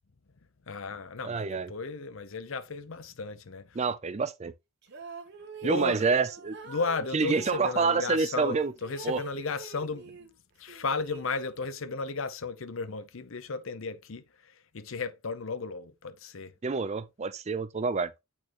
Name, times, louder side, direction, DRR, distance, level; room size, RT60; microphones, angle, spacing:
voice 1, 0.7-3.8 5.6-6.0 6.7-10.3 10.6-16.5, left 4 dB, 65° left, 0.7 m, -35 dB
voice 2, 1.2-1.7 3.8-4.5 5.6-6.6 7.1-8.7 9.0-9.2 16.6-18.1, right 4 dB, 30° right, 0.4 m, -27 dB
sound 1, 4.8-7.7 8.4-10.3 10.7-11.8, right 4 dB, 55° right, 1.1 m, -46 dB
8.5 x 4.4 x 2.9 m
head